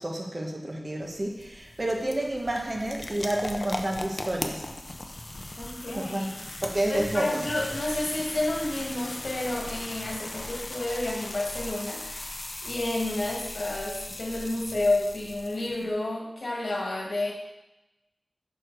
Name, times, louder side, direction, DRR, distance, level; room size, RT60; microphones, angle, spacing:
voice 1, 0.0-4.7 5.9-6.3 6.6-7.4, right 1 dB, 40° right, 0 dB, 1.4 m, -30 dB
sound 1, 1.0-15.9, left 1 dB, 40° left, 0.7 m, -38 dB
voice 2, 5.6-6.3 6.9-17.3, left 2 dB, 75° left, -1 dB, 1.7 m, -30 dB
6.6 x 6.1 x 4.6 m, 0.96 s
wide cardioid pair, 65°, 0 cm